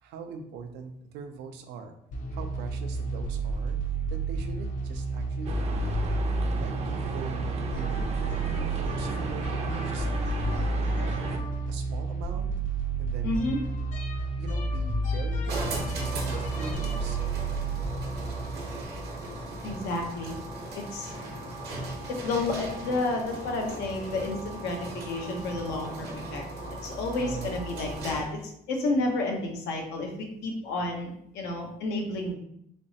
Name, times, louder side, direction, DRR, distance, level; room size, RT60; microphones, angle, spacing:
voice 1, 0.0-1.9 2.3-3.8 4.1-5.7 6.5-7.4 7.8-10.1 11.7-12.5 13.0-13.4 14.4-17.5 27.2-27.6, right 5 dB, 90° right, 6 dB, 0.5 m, -42 dB
sound 1, 2.1-19.4, right 2 dB, 50° left, 0.6 m, -30 dB
sound 2, 5.4-11.4, right 4 dB, 40° right, 0.5 m, -36 dB
voice 2, 13.2-13.6 19.6-20.4 20.8-21.1 22.1-26.4 26.8-32.3, left 2 dB, 85° left, 2 dB, 0.8 m, -31 dB
sound 3, 15.5-28.4, right 1 dB, 70° right, 0.9 m, -38 dB
3.3 x 3.0 x 2.8 m, 0.73 s
cardioid pair, 110°, 17 cm